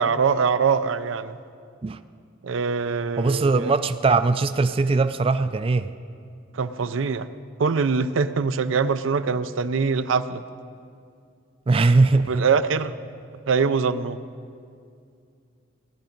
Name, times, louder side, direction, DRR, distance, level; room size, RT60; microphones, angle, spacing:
voice 1, 0.0-1.4 2.4-3.7 6.5-7.3 7.6-10.4 12.3-12.9 13.5-14.2, right 5 dB, 90° right, 12 dB, 0.5 m, -23 dB
voice 2, 3.2-5.9 11.7-12.4, right 3 dB, 30° right, 11 dB, 0.3 m, -20 dB
17.5 x 12.0 x 5.2 m, 2.4 s
head